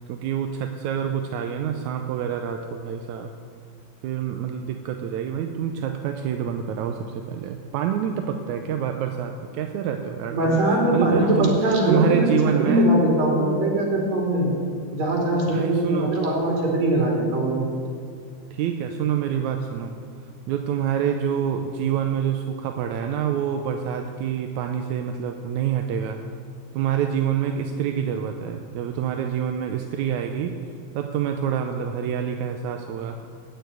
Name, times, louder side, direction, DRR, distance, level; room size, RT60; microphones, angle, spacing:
voice 1, 0.1-3.3 4.0-10.6 10.9-11.6 11.9-12.9 15.5-16.2 18.5-19.9 20.5-26.2 26.7-30.5 31.0-33.2, right 8 dB, 85° right, 5 dB, 2.1 m, -26 dB
voice 2, 10.3-12.3 12.6-14.5 14.9-17.6, right 1 dB, 65° right, -2 dB, 4.2 m, -21 dB
16.0 x 6.9 x 9.3 m, 2.3 s
omnidirectional pair, 3.3 m